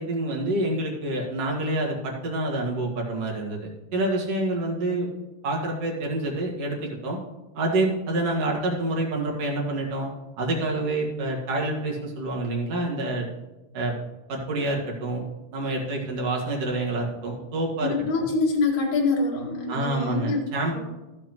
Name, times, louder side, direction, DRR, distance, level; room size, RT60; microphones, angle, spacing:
voice 1, 0.0-5.1 5.4-7.2 7.5-10.1 10.4-13.3 13.7-13.9 14.3-15.2 15.5-18.3 19.7-20.8, right 2 dB, 45° right, -1 dB, 2.5 m, -27 dB
voice 2, 17.8-20.4 20.7-20.8, left 3 dB, 50° left, -2 dB, 3.1 m, -25 dB
14.5 x 7.7 x 3.1 m, 1.1 s
omnidirectional pair, 4.7 m